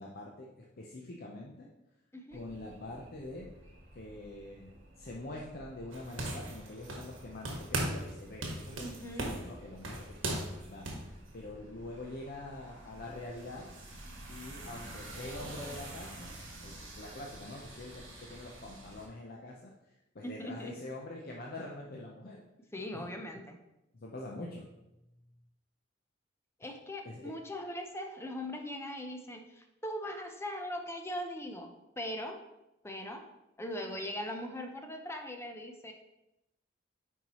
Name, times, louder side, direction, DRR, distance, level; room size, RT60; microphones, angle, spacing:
voice 1, 0.0-1.7 2.3-3.5 3.9-13.6 14.3-22.4 22.9-23.2 24.0-24.7 27.0-27.3, left 2 dB, 50° left, -2 dB, 0.7 m, -45 dB
voice 2, 2.1-2.4 8.8-9.4 20.2-20.7 22.7-23.6 26.6-31.7 32.0-32.4 32.8-33.2 33.6-35.9, left 1 dB, 15° left, 4 dB, 0.7 m, -40 dB
sound 1, 2.3-19.1, right 1 dB, 70° right, 2.3 m, -50 dB
sound 2, 5.9-7.2 7.5-8.1 8.4-11.1, right 1 dB, 85° right, 1.4 m, -37 dB
9.1 x 4.6 x 3.0 m, 0.91 s
head